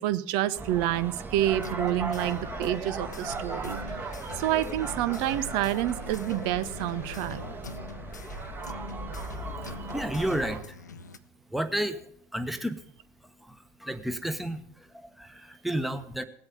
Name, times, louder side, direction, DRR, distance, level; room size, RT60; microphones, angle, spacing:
voice 1, 0.0-4.1 4.3-7.4, right 13 dB, 55° right, 15 dB, 0.8 m, -28 dB
sound 1, 0.5-10.6, right 3 dB, 20° right, 1.9 m, -37 dB
sound 2, 1.4-11.2, left 3 dB, 85° left, 0.6 m, -43 dB
voice 2, 9.9-10.8 11.5-12.0 12.3-12.8 13.4-16.3, right 1 dB, ahead, 9 dB, 1.3 m, -32 dB
18.5 x 8.0 x 5.3 m, 0.62 s
figure-of-eight pair, 70°, 9 cm